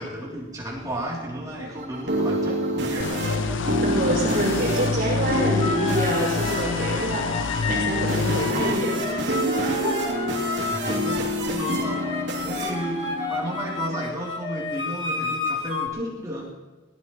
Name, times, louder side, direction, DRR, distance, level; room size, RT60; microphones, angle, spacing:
voice 1, 0.0-3.3 10.6-16.5, right 1 dB, 20° right, -4 dB, 3.1 m, -33 dB
sound 1, 1.3-14.0, equal, 70° right, 3.1 m, -28 dB
sound 2, 3.0-8.5, left 4 dB, 85° left, 0.6 m, -27 dB
voice 2, 3.8-10.0, equal, 50° right, -4 dB, 6.1 m, -27 dB
sound 3, 5.6-11.2 11.6-15.9, left 3 dB, 25° left, 1.3 m, -31 dB
21.0 x 18.5 x 3.1 m, 1.2 s
head